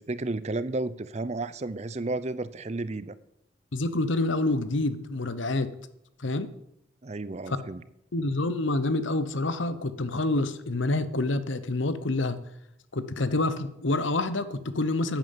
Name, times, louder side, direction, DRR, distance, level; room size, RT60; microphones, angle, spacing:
voice 1, 0.0-3.1 7.0-7.8, right 2 dB, 35° right, 15 dB, 0.5 m, -32 dB
voice 2, 3.7-5.7 6.2-6.5 7.5-7.6 8.1-12.4 12.9-15.2, left 2 dB, 70° left, 13 dB, 1.0 m, -27 dB
11.0 x 9.1 x 7.3 m, 0.80 s
head